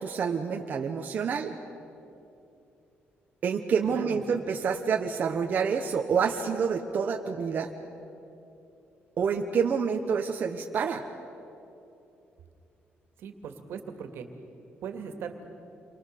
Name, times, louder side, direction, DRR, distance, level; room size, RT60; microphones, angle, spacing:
voice 1, 0.0-1.5 3.4-7.7 9.2-11.0, right 6 dB, 45° right, 2 dB, 1.3 m, -28 dB
voice 2, 3.9-4.2 13.2-14.3 14.8-15.4, right 7 dB, 80° right, 5 dB, 2.4 m, -39 dB
29.5 x 24.0 x 6.8 m, 2.8 s
cardioid pair, 155°, 4 cm